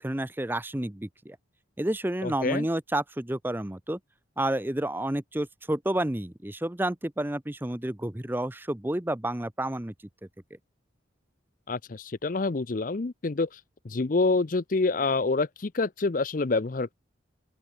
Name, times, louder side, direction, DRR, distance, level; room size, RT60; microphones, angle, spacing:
voice 1, 0.0-1.4 1.8-4.0 4.4-9.9, right 1 dB, 10° right, 0.7 m, -30 dB
voice 2, 2.2-2.7 11.7-13.6 13.8-16.9, left 3 dB, 45° left, 0.6 m, -27 dB
open air
head